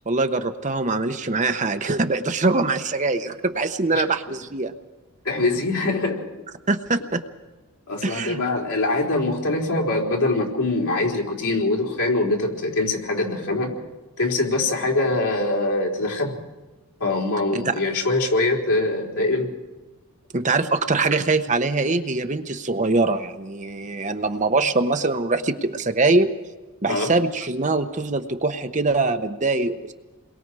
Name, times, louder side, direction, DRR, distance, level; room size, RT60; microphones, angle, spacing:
voice 1, 0.1-4.7 6.7-7.2 8.0-8.4 17.5-17.7 20.3-26.3 26.8-29.9, right 3 dB, 35° right, 7 dB, 1.0 m, -23 dB
voice 2, 5.2-6.3 7.9-13.7 14.2-16.4 17.0-19.5 26.9-27.1, left 2 dB, 80° left, -1 dB, 4.5 m, -23 dB
29.0 x 22.0 x 4.9 m, 1.1 s
head